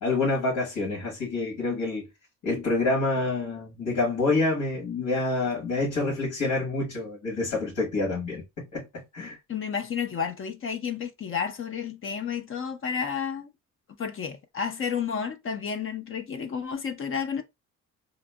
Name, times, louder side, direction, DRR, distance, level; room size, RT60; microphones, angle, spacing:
voice 1, 0.0-2.1 2.4-9.4, left 3 dB, 70° left, 1.5 m, -27 dB
voice 2, 9.5-13.5 14.0-17.4, left 6 dB, 45° left, 0.6 m, -31 dB
2.9 x 2.6 x 2.2 m
cardioid pair, 90°, 30 cm